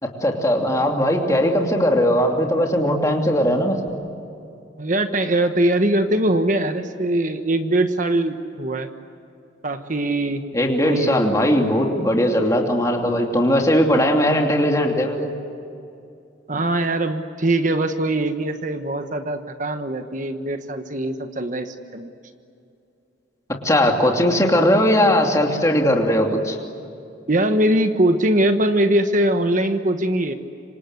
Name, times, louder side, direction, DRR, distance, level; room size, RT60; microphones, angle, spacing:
voice 1, 0.0-4.0 10.5-15.3 23.6-26.6, equal, 15° left, 1 dB, 2.8 m, -19 dB
voice 2, 4.8-8.9 9.6-10.4 10.8-11.3 16.5-22.1 27.3-30.3, right 1 dB, 40° right, 7 dB, 1.3 m, -21 dB
27.5 x 25.5 x 8.1 m, 2.6 s
head